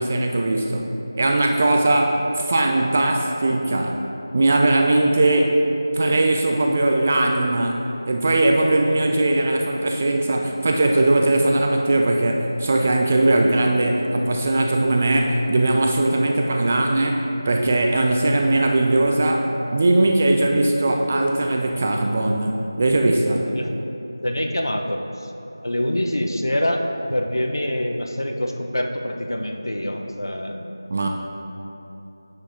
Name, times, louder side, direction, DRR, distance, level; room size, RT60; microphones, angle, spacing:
voice 1, 0.0-4.0 4.3-5.6 5.9-19.5 19.7-23.5 30.9-31.1, right 2 dB, 20° right, 2 dB, 0.3 m, -20 dB
voice 2, 24.2-25.3 25.6-26.8 27.1-30.6, left 1 dB, 70° left, 3 dB, 0.7 m, -25 dB
9.7 x 4.4 x 3.7 m, 3.0 s
figure-of-eight pair, 170°, 2 cm